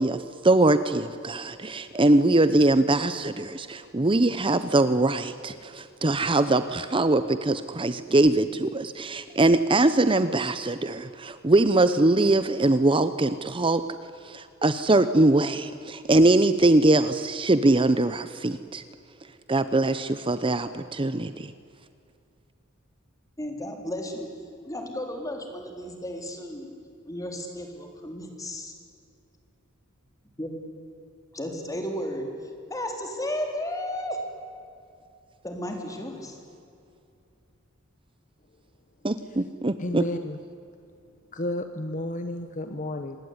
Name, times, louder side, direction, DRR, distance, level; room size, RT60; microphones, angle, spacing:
voice 1, 0.0-13.8 14.2-18.8 19.5-21.5 39.0-40.0, right 2 dB, 25° right, 12 dB, 0.8 m, -22 dB
voice 2, 23.4-24.3 24.6-26.7 27.1-28.7 30.2-30.5 31.3-32.3 32.7-34.2 35.4-36.4, left 1 dB, 15° left, 3 dB, 4.0 m, -33 dB
voice 3, 39.8-40.4 41.3-43.2, left 1 dB, 40° left, 8 dB, 1.2 m, -32 dB
26.5 x 20.0 x 9.7 m, 2.5 s
head